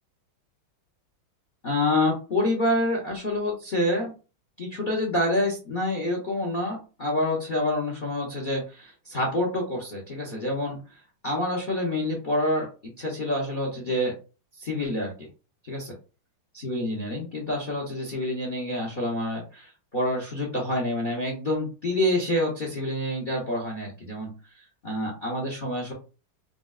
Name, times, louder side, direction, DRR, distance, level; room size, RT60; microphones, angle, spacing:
voice 1, 1.6-4.1 4.6-10.8 11.2-12.7 13.0-14.1 14.6-15.3 15.7-15.9 16.5-24.3 24.8-25.9, left 1 dB, 85° left, 0 dB, 0.4 m, -27 dB
4.9 x 2.0 x 2.3 m, 0.34 s
omnidirectional pair, 2.1 m